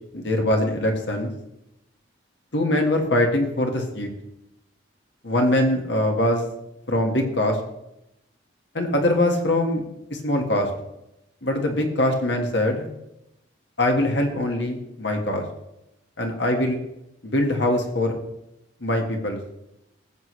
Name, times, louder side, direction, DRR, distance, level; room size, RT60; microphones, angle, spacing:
voice 1, 0.1-1.3 2.5-4.1 5.2-6.4 6.9-7.6 8.7-9.8 10.1-10.7 11.4-12.9 13.8-15.4 16.2-16.8 17.2-18.2 18.8-19.4, left 1 dB, 60° left, 2 dB, 1.7 m, -22 dB
17.0 x 7.8 x 3.3 m, 0.85 s
head